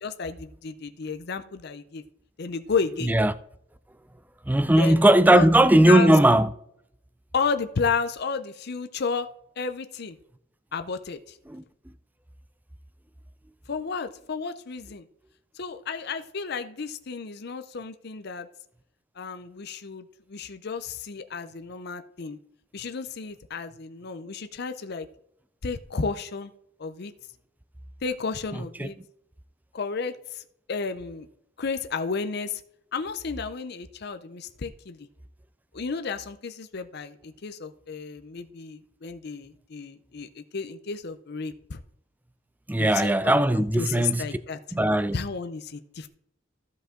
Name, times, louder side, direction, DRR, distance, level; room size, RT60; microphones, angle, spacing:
voice 1, 0.0-2.0 2.4-3.1 4.8-5.5 5.8-6.2 7.3-9.3 9.6-10.2 10.7-11.4 13.7-15.0 15.6-18.5 19.2-22.4 22.7-25.1 25.6-26.5 26.8-27.1 28.0-29.0 29.7-30.4 30.7-31.3 31.6-32.6 32.9-35.0 35.7-41.8 42.8-44.6 45.1-46.1, left 5 dB, 55° left, 0.6 m, -32 dB
voice 2, 3.0-3.3 4.5-6.5 11.5-11.6 28.8-28.9 42.7-44.2 44.7-45.2, right 1 dB, 10° right, 0.4 m, -18 dB
14.5 x 5.3 x 3.7 m
head